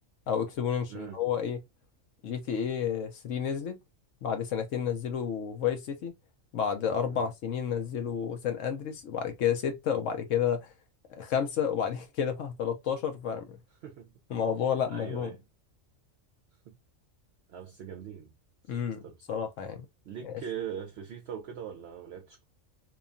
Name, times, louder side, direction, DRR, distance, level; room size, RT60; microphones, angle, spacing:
voice 1, 0.3-1.6 2.2-3.8 4.2-6.1 6.5-10.7 11.1-13.6 14.3-15.3 18.7-19.9 20.2-20.3, left 8 dB, 75° left, 1.0 m, -31 dB
voice 2, 0.9-1.2 7.1-7.3 13.8-14.1 14.9-15.4 16.7-16.8 17.5-18.3 18.7-19.4 20.0-22.4, right 8 dB, 65° right, 0.7 m, -41 dB
2.9 x 2.2 x 2.5 m
omnidirectional pair, 1.4 m